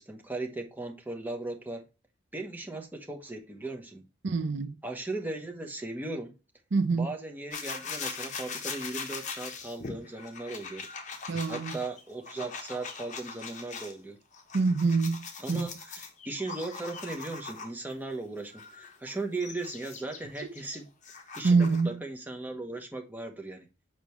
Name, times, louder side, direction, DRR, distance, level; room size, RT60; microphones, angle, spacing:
voice 1, 0.0-1.8 2.3-4.0 4.8-6.3 6.9-10.9 11.5-14.2 15.4-20.9 21.3-23.7, right 2 dB, 10° right, 1.0 m, -37 dB
voice 2, 4.2-4.7 6.7-7.1 11.3-11.7 14.5-15.7 21.4-21.9, right 4 dB, 70° right, 0.6 m, -25 dB
sound 1, 7.5-13.9 14.3-17.9 18.5-21.9, left 5 dB, 40° left, 1.0 m, -41 dB
6.1 x 5.2 x 3.0 m
head